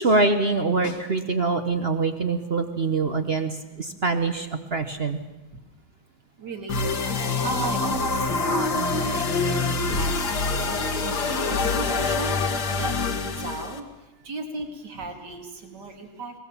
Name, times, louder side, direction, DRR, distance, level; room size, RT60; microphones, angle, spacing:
voice 1, 0.0-5.2, right 3 dB, 40° right, 7 dB, 1.0 m, -24 dB
Snare drum, 0.8-1.8 6.2-6.3, left 6 dB, 70° left, 2.1 m, -40 dB
voice 2, 6.4-6.9 7.4-10.1 10.5-11.1 11.6-12.4 12.8-13.8 14.2-16.3, right 3 dB, 55° right, 4 dB, 3.0 m, -35 dB
sound 1, 6.7-13.8, left 3 dB, 55° left, 2.0 m, -25 dB
22.0 x 19.5 x 7.3 m, 1.1 s
omnidirectional pair, 2.2 m